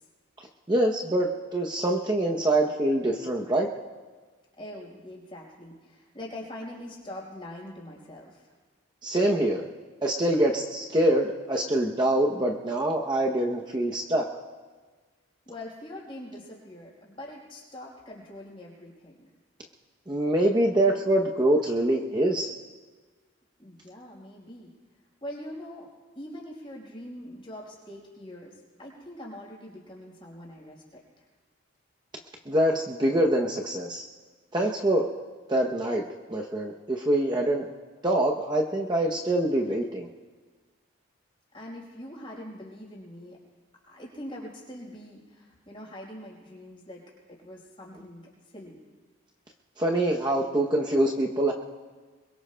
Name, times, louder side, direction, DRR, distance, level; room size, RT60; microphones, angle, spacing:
voice 1, 0.7-3.7 9.0-9.6 10.0-14.3 20.1-22.5 32.5-34.1 34.5-35.1 35.5-36.0 36.3-37.7 38.0-40.1 49.8-51.5, right 1 dB, 20° right, 0 dB, 0.7 m, -25 dB
voice 2, 4.6-8.5 15.4-19.3 23.6-24.7 25.2-31.2 41.5-43.4 43.8-47.0 47.3-48.8, left 1 dB, 25° left, -4 dB, 4.6 m, -43 dB
27.5 x 22.5 x 2.2 m, 1.4 s
head